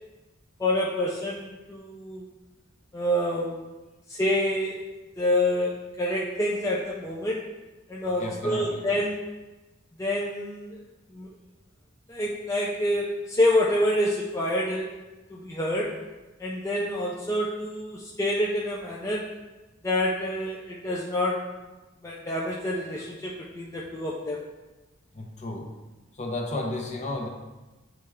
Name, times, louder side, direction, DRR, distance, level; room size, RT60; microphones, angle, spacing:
voice 1, 0.6-2.3 2.9-3.7 4.1-4.9 5.2-7.5 7.9-9.3 10.0-10.8 11.1-11.3 12.1-14.9 15.3-16.0 16.4-19.3 19.8-21.5 22.0-24.4, left 1 dB, 15° left, -4 dB, 0.5 m, -27 dB
voice 2, 8.2-8.8 25.1-25.7 26.1-27.3, left 2 dB, 35° left, 1 dB, 0.8 m, -32 dB
8.8 x 3.2 x 3.5 m, 1.1 s
head